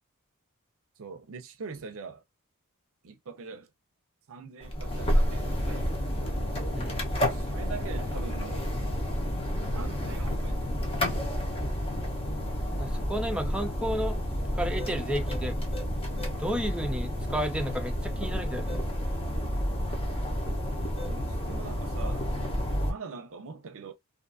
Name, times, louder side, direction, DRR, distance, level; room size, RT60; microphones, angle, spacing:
voice 1, 1.0-2.2 3.0-3.7 4.3-6.4 7.3-8.7 9.7-11.8 21.1-23.9, right 4 dB, 65° right, 0.6 m, -43 dB
sound 1, 4.6-22.9, equal, 25° left, 0.8 m, -30 dB
voice 2, 6.7-7.0 12.8-14.2 14.5-15.6 16.4-18.9, equal, 5° right, 0.5 m, -32 dB
2.6 x 2.4 x 2.5 m
head